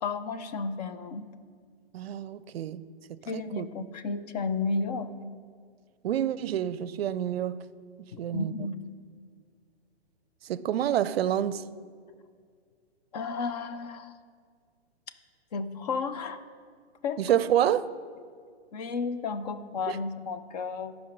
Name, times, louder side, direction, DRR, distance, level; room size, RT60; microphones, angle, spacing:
voice 1, 0.0-1.3 3.3-5.1 8.1-8.8 13.1-14.2 15.5-16.4 17.0-17.2 18.7-21.0, left 4 dB, 40° left, 0.5 m, -33 dB
voice 2, 1.9-2.8 3.1-3.7 6.0-7.7 8.2-8.7 10.4-11.6 17.2-17.9 19.9-20.0, right 10 dB, 65° right, 0.5 m, -28 dB
11.0 x 5.1 x 5.1 m
hypercardioid pair, 145°, 32 cm